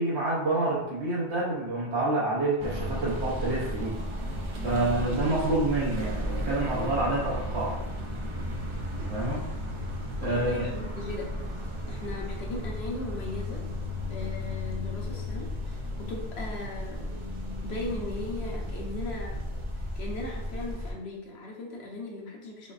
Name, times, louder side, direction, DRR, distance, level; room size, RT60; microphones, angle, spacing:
voice 1, 0.0-4.0 4.6-7.8 8.8-9.4 10.2-10.6, right 2 dB, 70° right, -6 dB, 1.2 m, -28 dB
sound 1, 2.6-20.9, left 1 dB, 40° right, 0.4 m, -34 dB
voice 2, 4.6-5.2 10.3-11.3 11.9-13.6 14.1-17.0 17.6-19.4 19.9-22.7, left 2 dB, 65° left, -1 dB, 1.1 m, -38 dB
5.5 x 3.1 x 2.5 m, 0.94 s
omnidirectional pair, 1.2 m